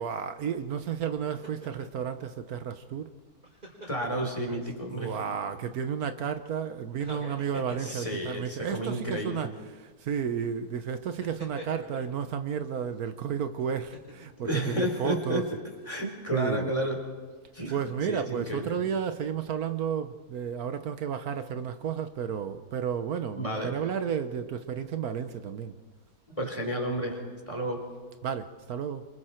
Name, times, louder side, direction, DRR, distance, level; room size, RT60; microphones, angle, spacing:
voice 1, 0.0-3.1 4.9-15.5 16.3-16.7 17.7-25.8 28.2-29.1, right 7 dB, 75° right, 9 dB, 1.4 m, -32 dB
sound 1, 1.3-2.0 3.2-4.7 5.0-5.7 6.9-8.5 9.2-9.3 11.2-12.2 13.8-14.4 14.8-15.0, right 1 dB, 30° right, 4.6 m, -45 dB
voice 2, 3.9-5.1 7.8-9.5 14.4-15.5 15.9-17.0 17.5-17.8 18.1-18.7 23.3-23.8 26.3-27.2 27.5-27.8, right 1 dB, 20° left, 1 dB, 3.8 m, -31 dB
28.0 x 25.0 x 4.5 m, 1.4 s
omnidirectional pair, 1.6 m